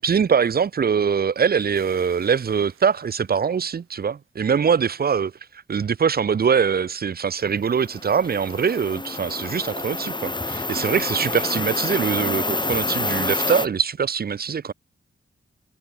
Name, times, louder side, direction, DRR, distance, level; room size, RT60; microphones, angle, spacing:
voice 1, 0.0-5.3 5.7-14.7, right 6 dB, 50° right, 0.6 m, -23 dB
sound 1, 1.7-4.3, right 7 dB, 85° right, 7.8 m, -53 dB
sound 2, 7.7-13.7, left 2 dB, 20° left, 1.3 m, -27 dB
cardioid pair, 70°, 21 cm